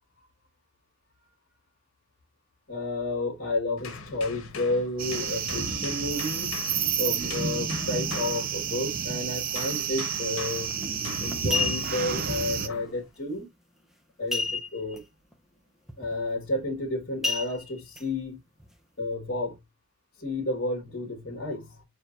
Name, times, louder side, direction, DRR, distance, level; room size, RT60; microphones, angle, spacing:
voice 1, 2.7-6.6 7.0-10.8 11.2-13.5 14.2-15.0 16.0-18.4 19.0-19.6 20.2-21.8, left 2 dB, 50° left, 1.5 m, -31 dB
sound 1, 3.8-9.1 9.5-12.1 12.7-13.0, left 4 dB, 70° left, 1.2 m, -41 dB
sound 2, 5.0-12.7, right 7 dB, 40° right, 0.6 m, -30 dB
sound 3, 10.6-10.9 11.3-12.1 14.3-15.0 15.3-15.4 15.9-16.1 17.2-18.0 18.6-18.7, left 3 dB, ahead, 0.6 m, -30 dB
6.6 x 3.0 x 2.5 m
head